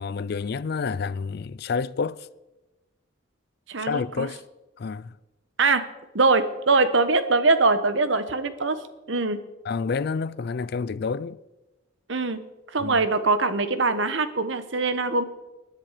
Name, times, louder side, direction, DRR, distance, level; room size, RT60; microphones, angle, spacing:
voice 1, 0.0-2.3 3.8-4.4 4.8-5.2 9.6-11.4 12.8-13.0, left 5 dB, 50° left, 0.4 m, -29 dB
voice 2, 3.7-4.3 5.6-5.8 6.1-8.8 9.1-9.4 12.1-12.4 12.7-15.2, right 3 dB, 65° right, 1.1 m, -22 dB
19.5 x 10.5 x 5.0 m
head